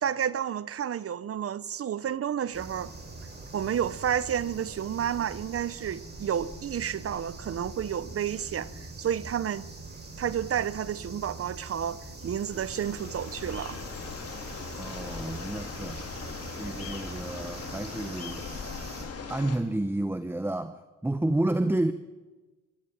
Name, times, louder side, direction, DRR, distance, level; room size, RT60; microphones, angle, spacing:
voice 1, 0.0-2.9 3.5-8.7 9.0-9.7 10.2-13.8, right 9 dB, 50° right, 0.9 m, -31 dB
sound 1, 2.5-19.0, right 2 dB, 35° right, 6.4 m, -43 dB
sound 2, 12.2-19.6, left 5 dB, 55° left, 3.9 m, -40 dB
voice 2, 14.8-16.0 16.6-18.7 19.3-21.9, right 1 dB, 5° right, 1.0 m, -30 dB
21.5 x 17.5 x 9.1 m
cardioid pair, 90°, 30 cm